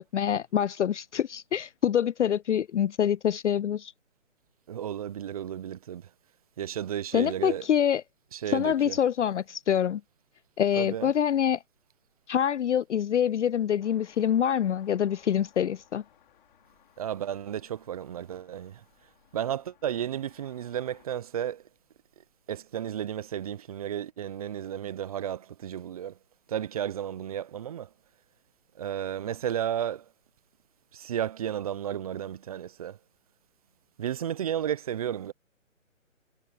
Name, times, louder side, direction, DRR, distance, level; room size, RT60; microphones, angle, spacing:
voice 1, 0.0-3.9 7.1-8.0 8.5-10.0 10.6-11.6 12.3-16.0, left 9 dB, 60° left, 0.5 m, -25 dB
voice 2, 4.7-6.1 6.6-7.6 8.3-9.0 10.8-11.1 17.0-18.8 19.3-21.6 22.5-26.1 26.5-27.9 28.8-30.0 30.9-33.0 34.0-35.3, right 10 dB, 30° right, 1.0 m, -33 dB
sound 1, 13.8-21.1, left 11 dB, 40° left, 5.2 m, -61 dB
figure-of-eight pair, 150°, 40 cm